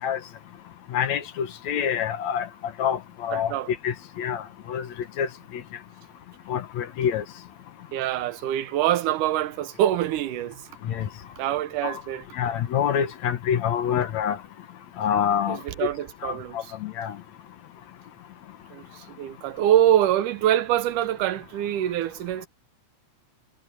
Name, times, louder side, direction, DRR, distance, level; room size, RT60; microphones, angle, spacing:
voice 1, 0.9-2.5 2.8-3.5 3.8-4.4 4.7-4.9 5.2-5.3 6.5-7.2 10.9-11.1 11.8-12.0 12.4-14.4 15.0-15.6 16.2-17.1, left 8 dB, 65° left, 2.3 m, -26 dB
voice 2, 3.3-3.7 7.9-10.7 11.4-12.3 15.5-16.7 18.7-22.5, right 12 dB, 80° right, 2.4 m, -25 dB
omnidirectional pair, 3.7 m